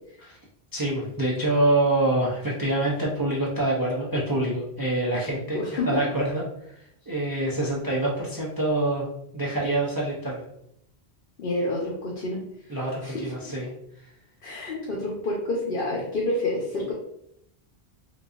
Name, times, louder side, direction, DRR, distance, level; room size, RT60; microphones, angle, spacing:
voice 1, 0.7-6.4 7.1-9.1 9.3-10.4 12.7-13.7, right 2 dB, 25° right, -4 dB, 0.6 m, -26 dB
voice 2, 5.5-6.0 11.4-12.4 12.7-13.5 14.4-16.9, left 2 dB, 60° left, -3 dB, 0.9 m, -29 dB
3.9 x 2.6 x 2.4 m, 0.75 s
omnidirectional pair, 1.0 m